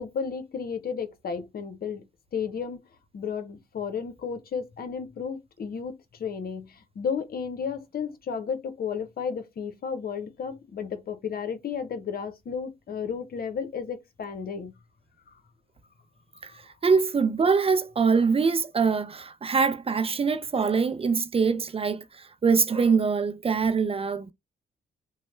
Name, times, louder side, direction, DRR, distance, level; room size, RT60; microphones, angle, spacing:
voice 1, 0.0-2.0 2.3-2.8 3.1-14.7 16.5-16.6, left 6 dB, 50° left, 0.8 m, -33 dB
voice 2, 16.8-22.0 22.4-24.3, right 5 dB, 30° right, 0.4 m, -23 dB
3.0 x 2.0 x 3.1 m
hypercardioid pair, 50°, 19 cm